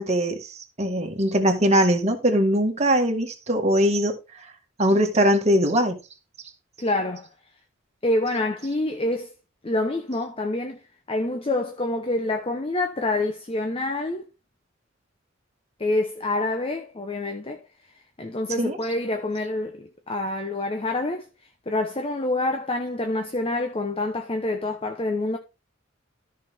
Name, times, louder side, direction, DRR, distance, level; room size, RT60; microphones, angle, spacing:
voice 1, 0.0-4.2 4.8-6.0 18.6-18.8, equal, 35° right, 1.9 m, -21 dB
voice 2, 6.8-7.3 8.0-9.3 9.6-10.8 11.1-14.3 15.8-17.6 18.2-21.3 21.7-25.4, left 2 dB, 30° left, 0.9 m, -27 dB
13.5 x 5.8 x 3.6 m
head